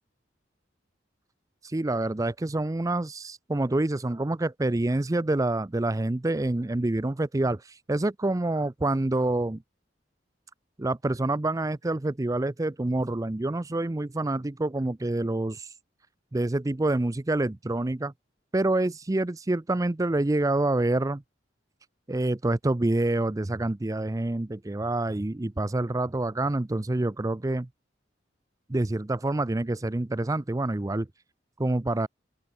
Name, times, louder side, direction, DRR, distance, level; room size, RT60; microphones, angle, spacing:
voice 1, 1.6-9.6 10.8-15.7 16.3-18.1 18.5-21.2 22.1-27.7 28.7-31.1 31.6-32.1, right 2 dB, 20° right, 0.5 m, -27 dB
open air
head